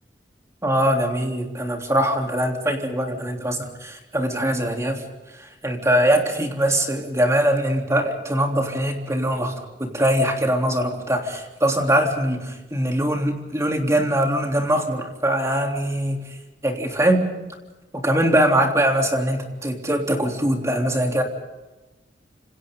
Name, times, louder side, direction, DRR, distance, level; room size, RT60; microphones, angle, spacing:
voice 1, 0.6-5.0 5.4-9.5 9.8-16.2 16.6-17.2 17.9-21.2, right 1 dB, 15° right, 2 dB, 3.4 m, -22 dB
29.5 x 27.5 x 3.9 m, 1.1 s
head